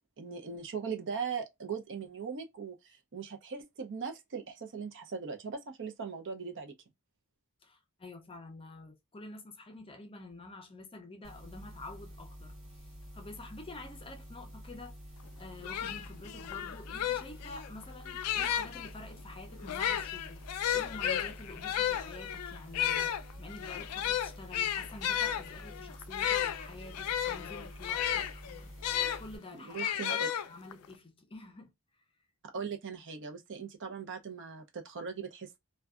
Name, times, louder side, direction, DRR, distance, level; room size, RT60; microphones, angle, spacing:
voice 1, 0.2-6.7 29.5-30.3 32.5-35.6, right 6 dB, 55° right, 0.6 m, -39 dB
voice 2, 7.6-12.9 13.1-15.0 15.4-28.7 29.2-30.2 30.5-31.7, left 2 dB, 25° left, 0.5 m, -48 dB
sound 1, 11.2-29.4, equal, 30° right, 1.4 m, -49 dB
sound 2, 15.3-15.4 15.6-18.9 19.6-29.2 29.8-30.9, left 10 dB, 75° left, 0.3 m, -33 dB
2.6 x 2.2 x 2.3 m
head